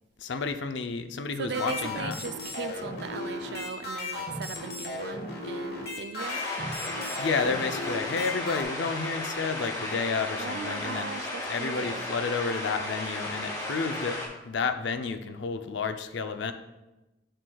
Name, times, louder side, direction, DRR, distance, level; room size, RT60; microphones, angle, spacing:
voice 1, 0.2-2.2 7.2-11.1 11.5-16.5, left 4 dB, 75° left, 8 dB, 0.5 m, -31 dB
voice 2, 1.4-6.4 10.4-12.0, right 5 dB, 60° right, 10 dB, 0.4 m, -38 dB
sound 1, 1.5-8.6, left 2 dB, 55° left, 1.2 m, -36 dB
sound 2, 6.2-14.3, left 1 dB, 20° left, 1.7 m, -35 dB
7.9 x 7.8 x 2.3 m, 1.0 s
head